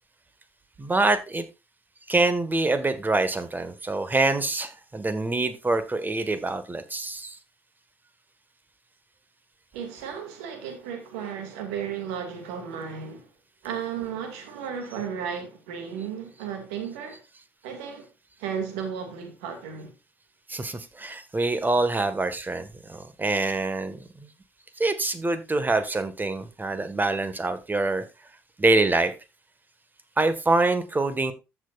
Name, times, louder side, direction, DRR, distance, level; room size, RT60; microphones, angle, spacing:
voice 1, 0.8-1.5 2.1-7.4 20.5-24.3 24.8-28.0 28.6-29.1 30.2-31.3, right 2 dB, 25° right, 1.8 m, -25 dB
voice 2, 9.7-13.3 13.6-17.2 17.6-18.1 18.4-19.9, right 7 dB, 85° right, 2.4 m, -34 dB
14.5 x 6.4 x 2.6 m
hypercardioid pair, 50°, 7 cm